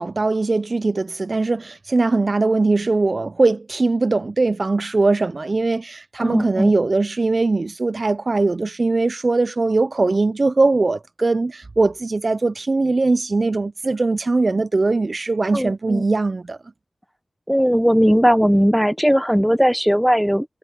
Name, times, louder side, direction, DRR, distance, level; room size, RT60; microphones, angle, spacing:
voice 1, 0.0-16.6, right 3 dB, 45° right, 0.3 m, -20 dB
voice 2, 6.2-6.7 15.5-16.0 17.5-20.5, equal, ahead, 0.7 m, -18 dB
cardioid pair, 55°, 0 cm